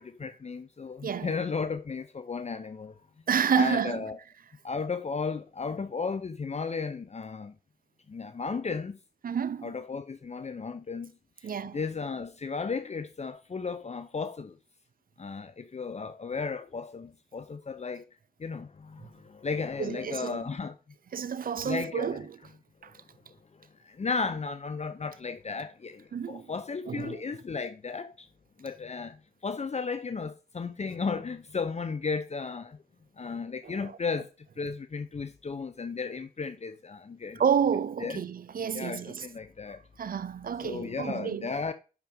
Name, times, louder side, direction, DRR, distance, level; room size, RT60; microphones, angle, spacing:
voice 1, 0.0-2.9 3.5-4.2 4.6-7.6 8.1-9.0 9.6-11.1 11.4-14.6 15.2-18.0 18.4-20.7 21.6-22.3 22.8-22.9 23.3-28.3 28.6-32.8 33.2-34.3 34.6-37.4 38.0-38.2 38.7-39.8 40.6-41.7, left 4 dB, 40° left, 0.8 m, -34 dB
voice 2, 1.0-1.3 3.3-4.0 9.2-9.7 11.4-11.8 19.8-20.4 21.1-22.2 22.8-22.9 26.1-26.5 26.9-27.2 33.6-33.9 37.4-39.3 40.0-41.5, right 7 dB, 60° right, 0.7 m, -29 dB
8.0 x 6.2 x 5.2 m
cardioid pair, 50°, 17 cm